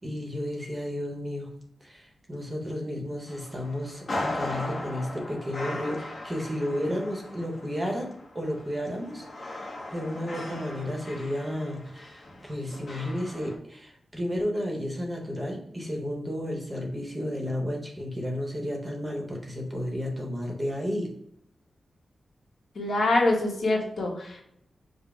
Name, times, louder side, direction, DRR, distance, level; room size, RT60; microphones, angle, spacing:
voice 1, 0.0-1.5 1.8-21.1, equal, 20° right, 1 dB, 0.9 m, -32 dB
sound 1, 3.3-13.5, left 2 dB, 40° left, 0.8 m, -38 dB
voice 2, 22.7-24.4, left 2 dB, 60° left, -1 dB, 1.1 m, -25 dB
5.1 x 2.0 x 4.7 m, 0.74 s
wide cardioid pair, 180°, 0 cm